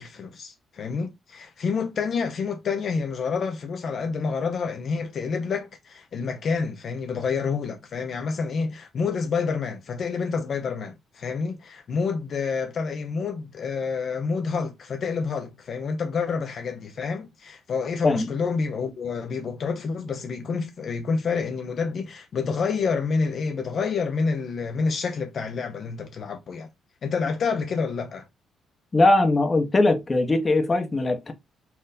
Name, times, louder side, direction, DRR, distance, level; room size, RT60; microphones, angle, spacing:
voice 1, 0.0-26.7 27.0-28.3, left 5 dB, 55° left, 0.8 m, -28 dB
voice 2, 28.9-31.3, left 2 dB, 30° left, 1.0 m, -20 dB
4.4 x 2.5 x 4.0 m
cardioid pair, 90°, 0 cm